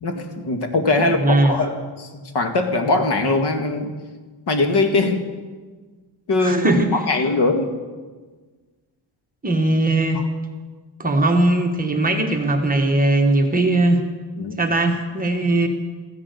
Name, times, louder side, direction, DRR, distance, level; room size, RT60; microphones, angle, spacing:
voice 1, 0.0-3.9 4.5-5.2 6.3-7.7 14.4-14.6, left 2 dB, 60° left, 5 dB, 1.9 m, -21 dB
voice 2, 1.2-1.6 6.4-6.9 9.4-10.2 11.0-14.0 14.6-15.7, right 2 dB, 20° right, 3 dB, 1.3 m, -19 dB
15.0 x 11.0 x 8.2 m, 1.4 s
wide cardioid pair, 165°, 46 cm